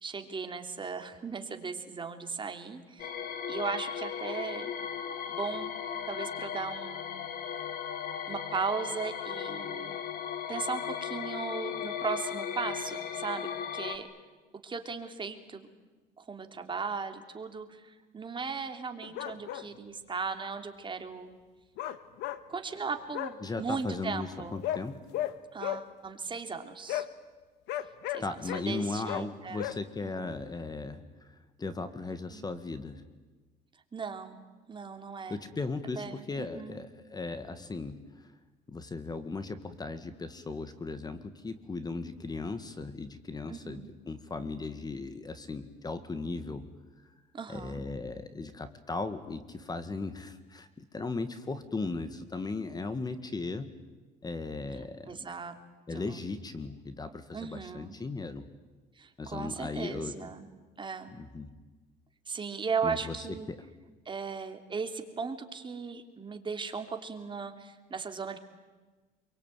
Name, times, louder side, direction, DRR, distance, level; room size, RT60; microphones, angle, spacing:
voice 1, 0.0-3.1 3.5-4.7 5.3-5.7 6.1-7.3 8.3-9.9 10.5-14.1 14.6-15.7 16.2-21.3 22.5-24.6 25.5-27.0 28.1-29.7 30.0-30.4 32.3-32.5 33.9-34.4 34.7-35.4 36.0-36.8 43.5-43.9 47.3-47.8 55.1-55.5 55.9-56.2 57.3-57.9 58.9-60.5 60.8-61.1 62.3-63.5 64.0-68.4, right 5 dB, 30° right, 6 dB, 3.1 m, -37 dB
sound 1, 3.0-14.0, left 8 dB, 65° left, 2.9 m, -37 dB
sound 2, 19.0-19.6 21.8-22.4 23.1-23.3 24.6-24.8 25.1-25.3 25.6-25.8 26.9-27.1 27.7-28.6 29.1-29.2 29.6-29.8, left 13 dB, 90° left, 1.5 m, -34 dB
voice 2, 23.4-25.1 28.2-33.0 35.3-38.3 38.7-46.7 47.5-53.8 54.2-55.3 55.9-58.5 59.2-60.3 61.1-61.6 62.8-63.1 63.5-63.6, left 3 dB, 25° left, 11 dB, 1.9 m, -37 dB
27.0 x 23.5 x 9.2 m, 1.3 s
cardioid pair, 110°, 17 cm